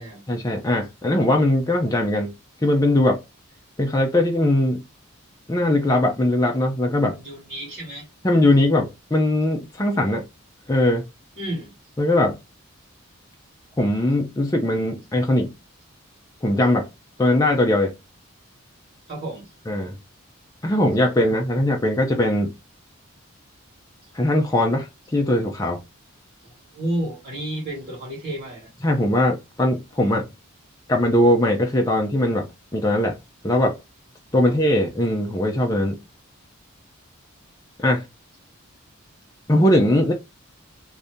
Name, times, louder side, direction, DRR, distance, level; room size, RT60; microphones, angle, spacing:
voice 1, 0.3-2.3 2.6-3.2 3.8-4.8 5.5-7.2 8.2-10.2 10.7-11.0 12.0-12.4 13.8-15.5 16.4-16.9 17.2-17.9 19.7-19.9 20.6-22.5 24.1-25.8 28.8-30.3 30.9-33.2 33.4-33.8 34.3-36.0 37.8-38.0 39.5-40.1, left 1 dB, 15° left, 0.4 m, -20 dB
voice 2, 7.1-8.1 11.3-11.7 19.1-19.5 24.0-24.1 26.4-28.7, right 1 dB, 45° right, 1.6 m, -31 dB
2.7 x 2.6 x 3.4 m
head